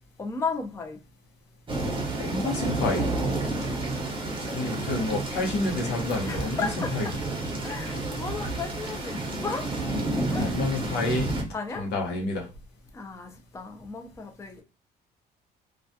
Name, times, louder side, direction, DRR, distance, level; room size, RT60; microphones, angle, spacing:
voice 1, 0.2-1.0 3.2-3.5 4.4-4.6 6.3-6.9 7.6-9.9 10.3-10.6 11.5-11.9 12.9-14.6, left 4 dB, 15° left, 3 dB, 0.5 m, -34 dB
sound 1, 1.7-11.4, right 2 dB, 30° right, 0.7 m, -30 dB
voice 2, 2.2-3.1 4.5-7.1 10.4-11.3 11.7-12.5, left 2 dB, 85° left, 1 dB, 0.9 m, -29 dB
2.3 x 2.2 x 2.6 m, 0.32 s
cardioid pair, 110°, 17 cm